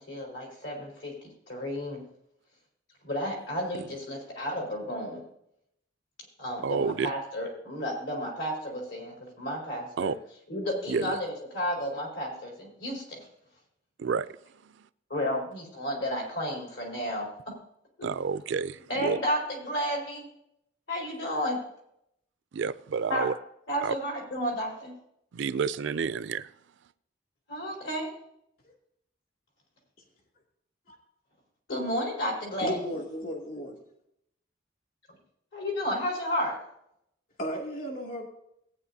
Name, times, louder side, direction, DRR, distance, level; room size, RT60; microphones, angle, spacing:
voice 1, 0.0-2.0 3.0-5.2 6.4-10.2 10.5-13.2 15.1-17.6 18.0-18.1 18.9-20.3 20.9-21.6 23.1-23.3 23.7-24.9 27.5-28.1 31.7-32.8 35.5-36.6, equal, 75° left, 4.5 m, -32 dB
voice 2, 6.6-7.1 10.0-10.2 10.9-11.2 14.0-14.3 18.0-19.2 22.5-23.3 23.8-23.9 25.3-26.5, right 5 dB, 65° right, 0.4 m, -29 dB
voice 3, 32.6-33.8 37.4-38.3, equal, 50° left, 2.4 m, -34 dB
18.0 x 9.2 x 2.7 m
head